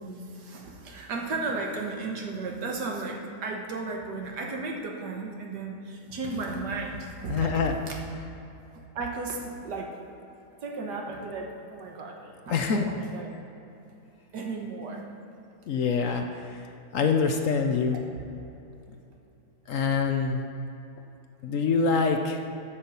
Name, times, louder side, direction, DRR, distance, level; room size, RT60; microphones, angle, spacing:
voice 1, 0.0-7.6 7.9-8.0 9.0-10.0 10.6-13.3 14.3-15.1 18.1-18.2 18.9-19.0, right 3 dB, 85° right, 1 dB, 1.8 m, -34 dB
voice 2, 7.3-7.8 12.5-12.9 15.7-18.0 19.7-20.5 21.4-22.4, left 5 dB, 60° left, 4 dB, 1.0 m, -25 dB
9.9 x 6.1 x 7.2 m, 2.9 s
omnidirectional pair, 1.8 m